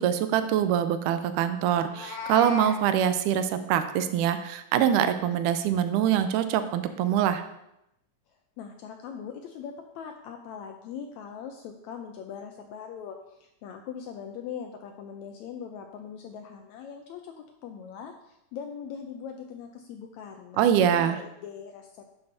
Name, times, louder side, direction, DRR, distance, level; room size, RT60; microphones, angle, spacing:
voice 1, 0.0-7.4 20.6-21.2, right 9 dB, 80° right, 10 dB, 2.0 m, -24 dB
Meow, 1.7-2.8, left 4 dB, 50° left, 0.8 m, -35 dB
voice 2, 8.6-22.1, left 7 dB, 85° left, 4 dB, 1.6 m, -41 dB
10.5 x 6.9 x 2.7 m, 0.84 s
omnidirectional pair, 3.8 m